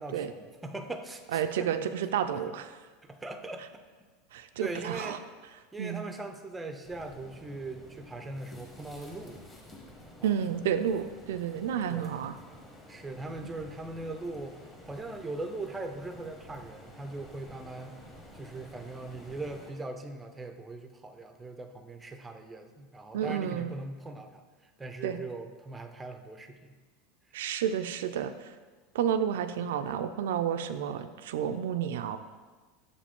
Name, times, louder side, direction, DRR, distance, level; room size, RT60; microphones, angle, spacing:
voice 1, 0.0-1.7 2.3-2.4 3.0-3.6 4.6-5.2 5.7-9.4 10.2-10.4 11.9-12.4 12.9-14.6 14.9-18.0 18.3-24.4 24.8-26.8, right 2 dB, 10° right, 7 dB, 0.5 m, -40 dB
voice 2, 1.3-2.8 4.3-5.2 5.8-6.0 10.2-12.4 13.4-13.5 23.1-23.7 25.0-25.2 27.3-28.5 28.9-32.2, right 8 dB, 85° right, 9 dB, 0.3 m, -31 dB
sound 1, 6.8-19.7, left 1 dB, 15° left, 1.1 m, -51 dB
6.5 x 4.9 x 3.6 m, 1.4 s
supercardioid pair, 140°, 0 cm